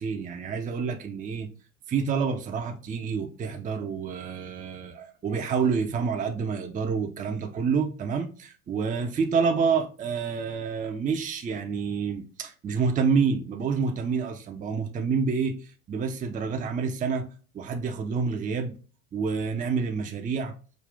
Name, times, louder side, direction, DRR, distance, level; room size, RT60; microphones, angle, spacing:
voice 1, 0.0-1.5 1.9-17.3 17.5-18.7 19.1-20.5, right 5 dB, 20° right, 0.6 m, -28 dB
5.2 x 2.4 x 3.4 m
hypercardioid pair, 85°, 42 cm